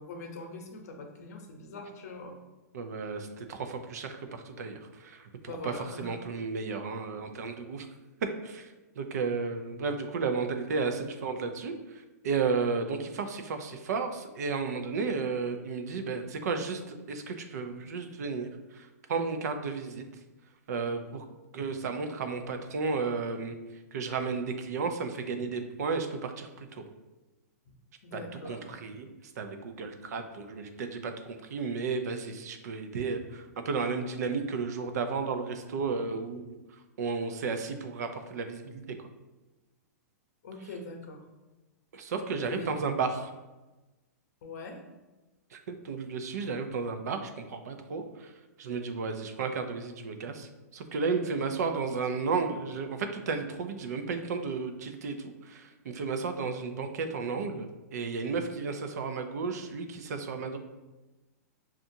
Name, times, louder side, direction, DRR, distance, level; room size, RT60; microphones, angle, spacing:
voice 1, 0.0-2.4 5.5-6.2 27.7-27.8 28.0-28.8 40.4-41.2 42.4-42.7 44.4-44.8, left 3 dB, 65° left, 3 dB, 0.8 m, -42 dB
voice 2, 2.7-7.9 8.4-20.0 20.7-21.2 21.5-23.6 23.9-26.8 28.1-29.1 29.4-36.6 37.0-39.1 41.9-43.3 45.5-48.3 48.6-60.6, right 4 dB, 70° right, 7 dB, 0.5 m, -33 dB
5.7 x 2.4 x 2.7 m, 1.1 s
hypercardioid pair, 135°, 9 cm